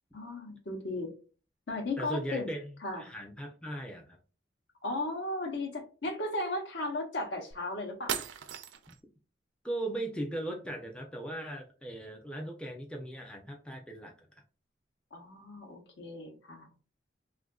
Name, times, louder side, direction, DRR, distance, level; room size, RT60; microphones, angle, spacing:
voice 1, 0.1-1.1 1.7-2.5 2.8-3.1 4.8-8.2 15.1-16.7, left 2 dB, 70° left, 3 dB, 0.8 m, -36 dB
voice 2, 2.0-4.2 9.6-14.3, right 1 dB, 5° left, 1 dB, 0.4 m, -38 dB
sound 1, 7.5-7.6 8.1-9.0, right 8 dB, 75° right, 0.4 m, -36 dB
3.4 x 2.4 x 2.3 m, 0.36 s
head